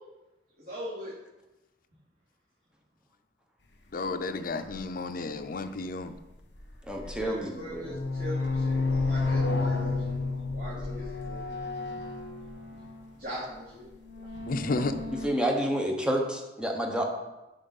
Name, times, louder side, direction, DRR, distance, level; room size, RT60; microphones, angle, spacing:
voice 1, 0.6-1.1 7.0-10.0 10.5-11.5 13.1-13.9, equal, 55° right, -10 dB, 2.6 m, -40 dB
voice 2, 3.9-6.1 14.5-15.0, left 3 dB, 50° left, 8 dB, 0.5 m, -32 dB
sound 1, 4.7-4.8 6.5-7.3 7.6-13.1 13.9-15.3, left 3 dB, 75° left, 1.1 m, -31 dB
voice 3, 6.8-8.0 15.2-17.0, equal, 5° right, 1 dB, 1.0 m, -29 dB
7.9 x 6.1 x 4.0 m, 1.0 s
head